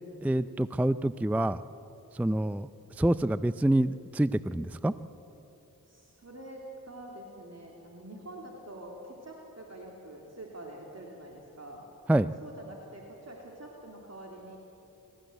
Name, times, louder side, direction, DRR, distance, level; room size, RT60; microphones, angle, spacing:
voice 1, 0.2-1.6 2.1-2.7 3.0-4.9 12.1-12.3, right 1 dB, 5° right, 15 dB, 0.4 m, -26 dB
voice 2, 5.9-11.8 12.4-14.6, right 1 dB, 45° right, -1 dB, 3.2 m, -46 dB
25.5 x 14.0 x 8.1 m, 2.9 s
cardioid pair, 45°, 38 cm